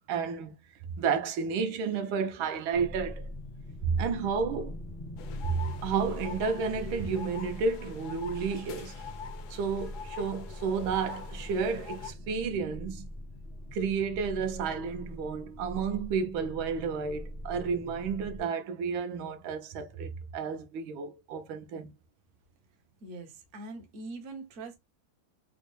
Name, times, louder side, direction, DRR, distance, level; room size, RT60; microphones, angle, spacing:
voice 1, 0.1-0.5 1.0-3.3 3.8-4.8 5.4-9.1 9.5-13.1 13.7-21.9, right 5 dB, 80° right, 1.4 m, -31 dB
sound 1, 2.7-18.4, left 1 dB, 55° left, 0.3 m, -42 dB
sound 2, 5.2-12.1, left 8 dB, 75° left, 0.9 m, -45 dB
voice 2, 23.0-24.8, right 3 dB, 55° right, 0.8 m, -42 dB
4.2 x 2.1 x 3.0 m
omnidirectional pair, 2.3 m